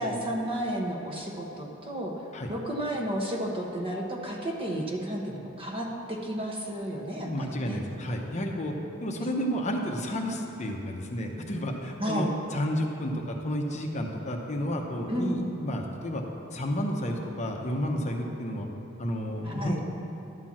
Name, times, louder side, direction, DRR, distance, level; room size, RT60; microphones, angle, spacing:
voice 1, 0.0-2.1 2.5-7.8 12.0-12.3 15.1-15.3 19.4-19.8, right 1 dB, 25° right, 0 dB, 1.1 m, -32 dB
voice 2, 7.2-8.7 9.0-16.2 16.5-18.7 19.0-19.8, equal, 35° left, 1 dB, 0.8 m, -31 dB
11.5 x 4.4 x 7.4 m, 2.9 s
head